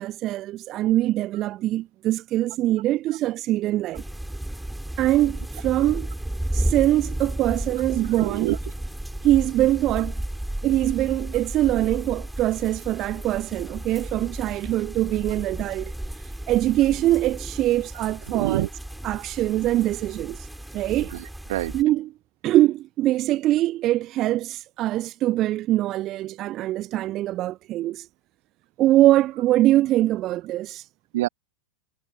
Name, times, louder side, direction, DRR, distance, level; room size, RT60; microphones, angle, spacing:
voice 1, 0.0-4.0 5.0-6.1 6.5-8.6 9.2-10.1 10.6-15.9 16.2-18.7 19.0-20.5 20.7-21.1 21.7-22.1 22.4-28.1 28.8-30.9, right 15 dB, 35° right, 0.9 m, -23 dB
sound 1, 3.9-21.8, right 1 dB, 5° right, 6.6 m, -33 dB
voice 2, 7.7-8.6 12.6-12.7 18.3-18.7 21.0-21.7 31.1-31.3, right 16 dB, 55° right, 1.9 m, -28 dB
figure-of-eight pair, 90°, 0 cm